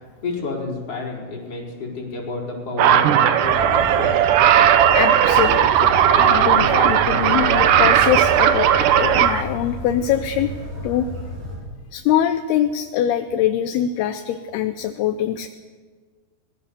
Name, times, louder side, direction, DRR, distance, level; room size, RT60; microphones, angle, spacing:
voice 1, 0.2-4.2, left 3 dB, 35° left, -2 dB, 5.4 m, -30 dB
sound 1, 2.8-9.4, right 10 dB, 80° right, 1.9 m, -16 dB
sound 2, 3.4-11.6, left 1 dB, 45° right, 8.6 m, -32 dB
voice 2, 4.9-8.7 9.0-10.5 10.8-11.1 11.9-15.5, left 10 dB, 75° left, 8 dB, 2.5 m, -23 dB
25.0 x 20.0 x 7.0 m, 1.5 s
omnidirectional pair, 5.2 m